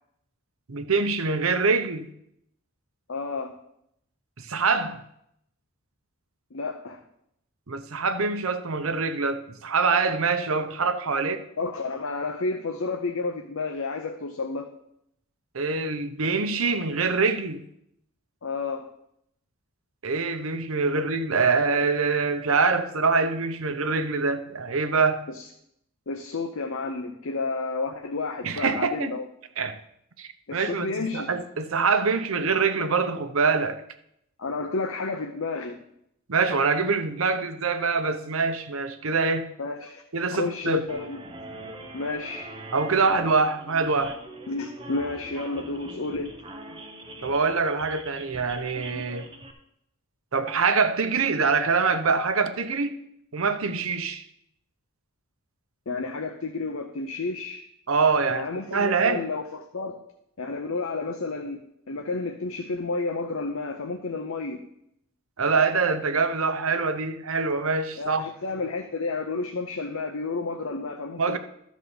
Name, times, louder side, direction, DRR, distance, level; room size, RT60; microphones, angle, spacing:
voice 1, 0.7-2.1 4.4-5.0 7.7-11.4 15.5-17.6 20.0-25.2 28.4-29.1 29.6-29.8 30.2-33.8 36.3-39.5 40.1-40.9 42.7-44.2 47.2-49.3 50.3-53.0 53.3-54.2 57.9-59.2 65.4-68.3 71.2-71.4, right 4 dB, 75° right, 0.8 m, -24 dB
voice 2, 3.1-3.6 6.5-7.0 11.6-14.7 18.4-18.9 25.3-25.5 26.1-29.2 30.5-31.3 34.4-35.8 39.6-40.0 40.3-41.2 41.9-42.5 44.5-46.4 55.9-57.6 58.3-60.0 60.4-61.6 61.9-64.6 68.0-71.4, left 3 dB, 75° left, 0.7 m, -31 dB
sound 1, 40.9-49.5, right 1 dB, 25° right, 0.9 m, -42 dB
12.5 x 4.2 x 6.9 m
head